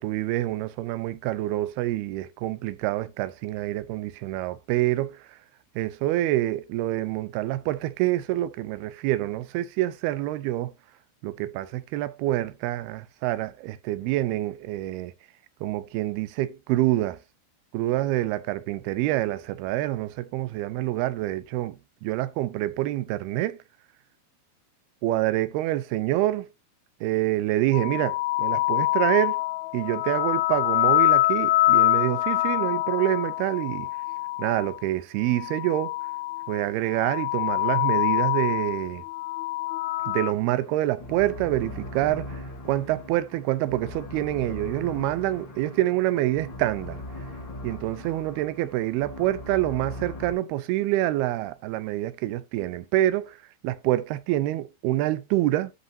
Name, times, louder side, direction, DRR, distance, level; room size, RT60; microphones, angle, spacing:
voice 1, 0.0-5.2 5.8-10.7 11.2-15.1 15.6-17.2 17.7-23.6 25.0-26.5 27.0-29.4 29.7-33.9 34.4-36.0 36.5-39.0 40.1-47.0 47.6-53.4 53.6-55.7, right 15 dB, 90° right, 2.7 m, -26 dB
sound 1, 27.7-34.8 35.3-36.6 36.9-40.3, left 18 dB, 80° left, 2.3 m, -25 dB
sound 2, 40.3-50.3, left 2 dB, 35° left, 2.4 m, -40 dB
13.0 x 5.4 x 2.8 m
omnidirectional pair, 4.4 m